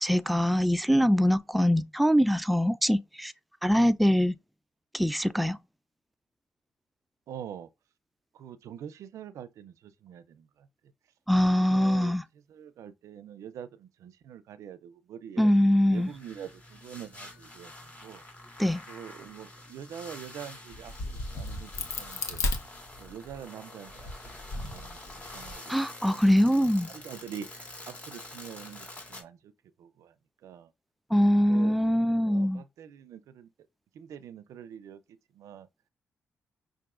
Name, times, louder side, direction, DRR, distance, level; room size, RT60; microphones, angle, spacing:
voice 1, 0.0-3.3 3.6-4.3 4.9-5.6 11.3-12.2 15.4-16.1 18.6-18.8 25.7-26.9 31.1-32.6, equal, ahead, 0.3 m, -23 dB
voice 2, 7.3-7.7 8.3-10.7 11.5-12.2 12.5-15.5 15.9-18.2 18.9-20.9 21.3-22.4 23.0-24.1 24.5-26.2 26.9-29.4 29.8-30.1 30.4-30.7 31.5-31.8 32.3-33.5 33.9-35.0 35.4-35.7, right 9 dB, 75° right, 0.4 m, -45 dB
sound 1, 15.9-29.2, left 1 dB, 25° left, 2.0 m, -47 dB
Crack, 20.7-23.4 23.9-25.5, left 2 dB, 70° left, 1.0 m, -35 dB
5.8 x 2.5 x 2.4 m
cardioid pair, 65°, 5 cm